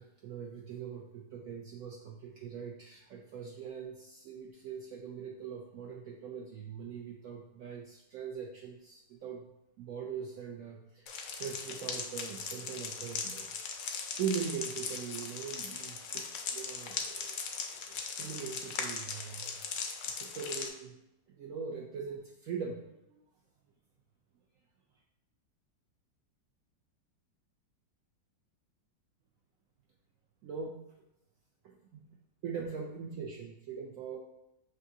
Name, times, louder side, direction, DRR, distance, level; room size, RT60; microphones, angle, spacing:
voice 1, 0.0-9.5 9.8-11.1 11.4-17.4 17.7-17.8 18.2-19.9 20.2-21.0 21.3-23.2 30.4-30.8 31.6-31.8 32.4-34.2, right 6 dB, 90° right, -1 dB, 0.7 m, -41 dB
sound 1, 11.1-20.7, left 5 dB, 80° left, 0.6 m, -39 dB
6.4 x 2.6 x 2.7 m, 0.89 s
omnidirectional pair, 2.0 m